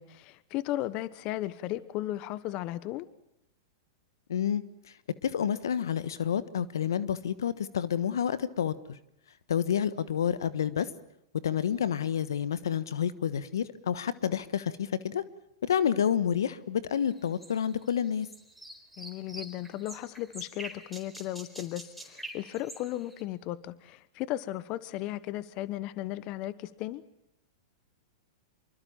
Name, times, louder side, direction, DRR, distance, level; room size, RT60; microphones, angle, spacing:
voice 1, 0.0-3.1 19.0-27.0, left 15 dB, 45° left, 17 dB, 1.1 m, -35 dB
voice 2, 4.3-4.6 5.2-9.0 9.5-10.9 11.4-15.2 15.6-18.3, left 8 dB, 75° left, 16 dB, 1.3 m, -29 dB
sound 1, 17.1-23.2, right 1 dB, ahead, 4.8 m, -46 dB
26.0 x 23.5 x 7.3 m, 0.82 s
hypercardioid pair, 105°, 2 cm